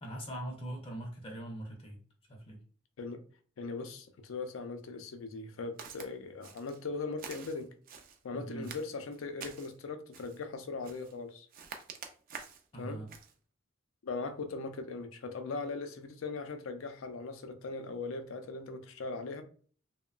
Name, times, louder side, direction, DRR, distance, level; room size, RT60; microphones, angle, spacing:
voice 1, 0.0-2.0 2.3-2.6 8.3-8.7 12.7-13.1, right 1 dB, 25° left, 0.5 m, -41 dB
voice 2, 3.6-7.7 8.2-11.5 12.8-13.0 14.0-19.4, left 3 dB, 85° left, 0.4 m, -39 dB
Walk footsteps, 5.8-6.1 6.4-6.8 7.2-8.2 8.6-9.7 10.1-10.4 10.8-11.2 11.5-12.7 13.1-13.3, right 6 dB, 45° right, 0.3 m, -47 dB
2.9 x 2.1 x 2.3 m
head